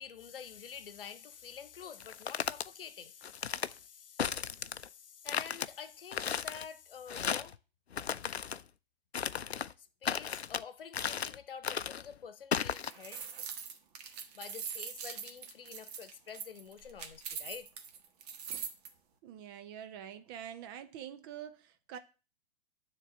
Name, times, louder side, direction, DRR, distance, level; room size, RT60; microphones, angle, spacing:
voice 1, 0.0-7.6 9.8-13.2 14.3-17.7, left 7 dB, 60° left, 1.0 m, -48 dB
sound 1, 2.0-2.7 3.2-3.7 4.2-4.9 5.3-5.7 6.1-6.7 7.1-7.6 7.9-8.6 9.1-9.7 10.0-10.6 10.9-11.4 11.6-12.1 12.5-12.9, left 7 dB, 80° left, 0.5 m, -35 dB
sound 2, 12.7-18.9, right 7 dB, 40° right, 1.4 m, -42 dB
voice 2, 19.2-22.0, right 9 dB, 25° right, 0.5 m, -46 dB
9.8 x 3.7 x 7.2 m
figure-of-eight pair, 110°, 32 cm